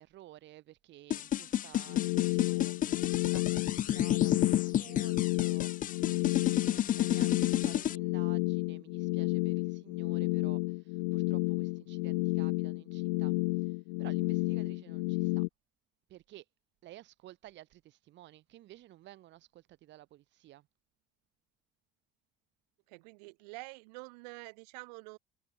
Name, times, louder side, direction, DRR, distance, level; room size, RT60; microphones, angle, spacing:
voice 1, 0.0-13.4 13.6-15.4 16.1-16.4 16.8-20.7, right 15 dB, 65° right, 2.9 m, -54 dB
sound 1, 1.1-8.0, left 11 dB, 40° left, 0.5 m, -30 dB
sound 2, 1.8-15.5, left 32 dB, 85° left, 0.9 m, -31 dB
voice 2, 22.9-25.2, right 28 dB, 85° right, 4.5 m, -47 dB
supercardioid pair, 80°, 20 cm